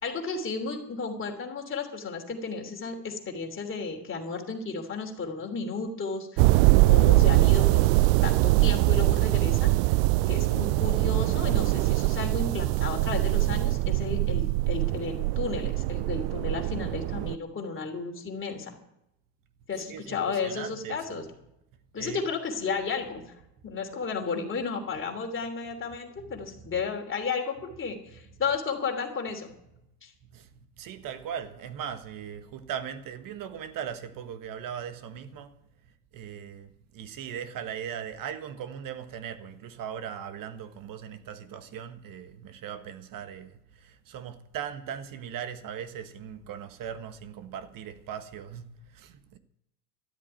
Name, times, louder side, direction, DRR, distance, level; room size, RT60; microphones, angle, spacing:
voice 1, 0.0-7.9 8.2-9.7 10.3-18.7 19.7-21.2 21.9-23.2 23.6-29.5 30.0-30.1, left 5 dB, 25° left, 3.1 m, -33 dB
sound 1, 6.4-17.4, right 19 dB, 60° right, 0.5 m, -23 dB
voice 2, 19.7-21.2 21.9-22.3 24.9-25.0 25.6-25.7 26.2-26.9 27.7-27.8 28.1-28.6 29.5-29.7 30.3-35.6 36.1-49.4, right 8 dB, 45° right, 1.5 m, -39 dB
13.5 x 8.3 x 9.0 m
supercardioid pair, 110°, 46 cm